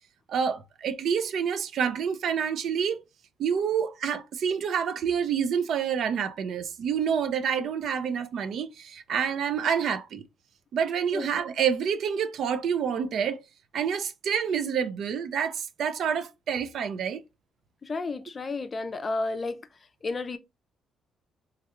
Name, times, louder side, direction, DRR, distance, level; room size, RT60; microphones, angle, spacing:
voice 1, 0.3-3.0 3.4-10.2 10.7-13.4 13.7-17.2, right 7 dB, 70° right, 0.4 m, -28 dB
voice 2, 17.8-19.6 20.0-20.4, left 3 dB, 35° left, 0.4 m, -31 dB
3.3 x 2.3 x 2.9 m
cardioid pair, 90°, 0 cm